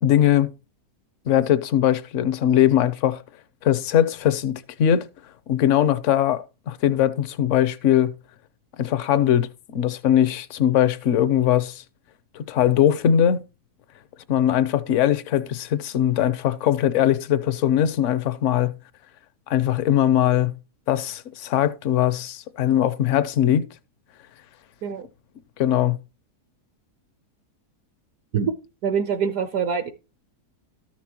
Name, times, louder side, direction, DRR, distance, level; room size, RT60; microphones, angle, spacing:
voice 1, 0.0-0.5 1.3-3.2 3.6-5.1 5.5-8.1 8.8-9.5 9.7-11.8 12.3-13.4 14.3-18.7 19.5-20.5 20.9-23.7 25.6-26.0, left 10 dB, 65° left, 0.8 m, -20 dB
voice 2, 28.8-29.9, right 7 dB, 70° right, 1.2 m, -24 dB
13.0 x 6.0 x 2.9 m
omnidirectional pair, 1.7 m